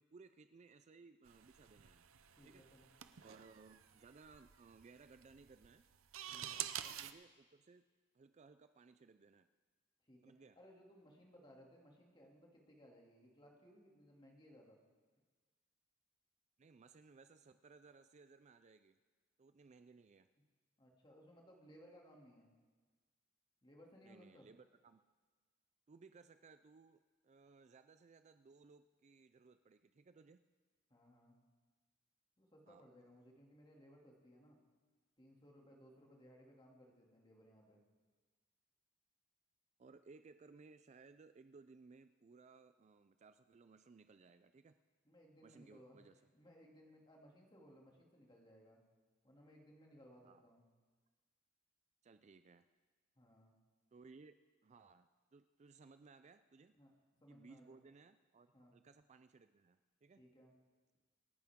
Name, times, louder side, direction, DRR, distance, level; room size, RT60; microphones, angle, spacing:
voice 1, 0.0-2.0 2.4-2.6 3.2-5.8 6.8-7.9 8.1-9.5 10.2-10.6 16.6-19.0 19.4-20.3 24.0-25.0 25.9-30.4 32.7-32.8 39.8-44.8 45.4-46.2 50.2-50.4 52.0-52.7 53.9-54.3 54.6-56.8 57.3-60.2, right 4 dB, 35° right, 10 dB, 0.4 m, -62 dB
sound 1, 1.3-7.1, right 11 dB, 70° right, 0.7 m, -49 dB
voice 2, 2.3-2.9 6.3-6.7 10.0-14.8 20.8-22.5 23.6-24.5 30.9-31.4 32.4-34.6 35.2-37.8 45.0-46.0 46.3-48.8 49.2-50.7 53.2-53.5 56.7-56.9 57.2-57.8 58.5-58.7 60.2-60.5, equal, 20° left, -1 dB, 2.5 m, -63 dB
27.0 x 10.5 x 3.7 m, 1.4 s
head